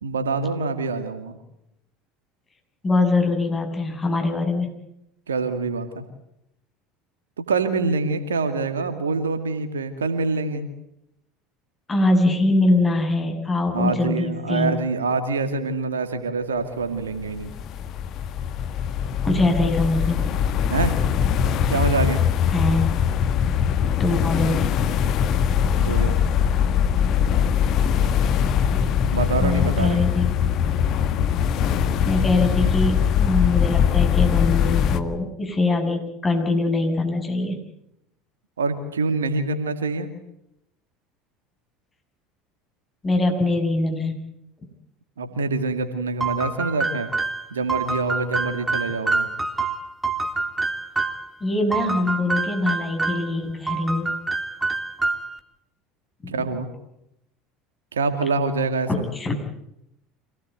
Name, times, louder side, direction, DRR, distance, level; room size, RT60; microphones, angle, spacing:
voice 1, 0.0-1.3 5.3-6.0 7.4-10.7 13.7-17.5 20.7-21.0 21.7-22.2 25.8-26.2 29.1-30.0 38.6-40.1 45.2-47.1 47.5-49.3 56.3-56.7 57.9-58.9, right 3 dB, 80° right, 8 dB, 2.2 m, -25 dB
voice 2, 2.8-4.7 11.9-14.7 19.2-20.4 22.5-22.9 24.0-24.8 28.3-28.4 28.7-29.0 29.4-30.3 32.0-37.6 43.0-44.2 51.4-54.2 56.2-56.4 58.9-59.3, left 2 dB, 25° left, 4 dB, 6.6 m, -23 dB
sound 1, 17.0-35.0, left 8 dB, 50° left, 1.6 m, -22 dB
sound 2, 46.2-51.3 51.7-53.3 53.7-55.4, right 3 dB, 10° right, 3.1 m, -26 dB
26.5 x 17.5 x 9.4 m, 0.83 s
figure-of-eight pair, 70°, 0 cm